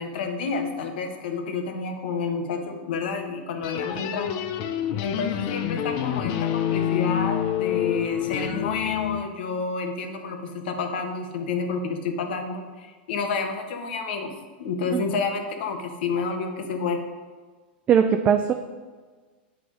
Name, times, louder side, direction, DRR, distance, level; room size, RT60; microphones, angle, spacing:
voice 1, 0.0-4.4 5.0-14.3 14.6-17.0, left 4 dB, 70° left, 5 dB, 1.2 m, -29 dB
sound 1, 3.6-9.2, left 10 dB, 50° left, 0.6 m, -27 dB
voice 2, 17.9-18.5, right 7 dB, 25° right, 5 dB, 0.4 m, -19 dB
8.2 x 4.8 x 5.1 m, 1.4 s
hypercardioid pair, 130°, 6 cm